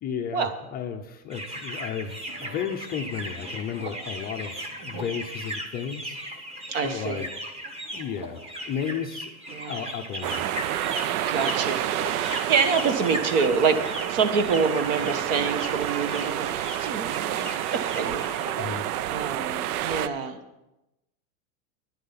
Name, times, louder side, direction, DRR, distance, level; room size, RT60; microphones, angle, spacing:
voice 1, 0.0-7.3 7.9-10.4 18.6-18.8, left 8 dB, 20° left, 3 dB, 0.5 m, -34 dB
sound 1, 1.3-18.5, equal, 15° right, 1.2 m, -37 dB
voice 2, 6.7-7.2 9.5-9.9 11.3-11.8 12.1-18.3 18.6-18.8 19.1-20.4, right 5 dB, 55° right, 9 dB, 1.4 m, -27 dB
sound 2, 10.2-20.1, right 12 dB, 85° right, 0.6 m, -29 dB
10.5 x 10.0 x 5.7 m, 0.95 s
supercardioid pair, 145°, 44 cm